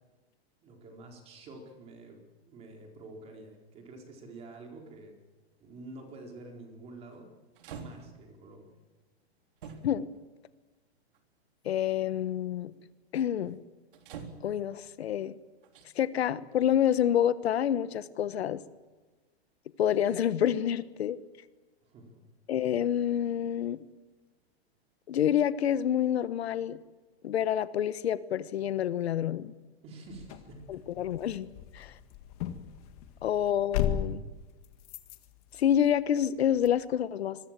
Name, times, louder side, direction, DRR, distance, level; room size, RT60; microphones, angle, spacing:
voice 1, 0.6-2.2 2.5-5.2 5.6-7.3 7.7-8.7 21.8-22.2 29.8-30.8, right 2 dB, 20° right, 2 dB, 4.3 m, -48 dB
sound 1, 6.1-6.4 7.1-7.2 7.6-8.3 9.6-10.2 11.1-11.2 13.9-14.8 15.6-15.9, right 6 dB, 55° right, 3.7 m, -45 dB
voice 2, 11.6-12.7 13.1-13.6 14.4-15.4 15.9-18.6 19.8-21.2 22.5-23.8 25.1-26.8 27.2-29.5 30.7-31.5 31.7-31.9 33.2-34.2 35.5-37.4, left 10 dB, 70° left, 14 dB, 1.3 m, -28 dB
sound 2, 30.1-36.8, left 10 dB, 35° left, 1.9 m, -37 dB
25.5 x 22.0 x 7.6 m, 1.3 s
hypercardioid pair, 165°, 32 cm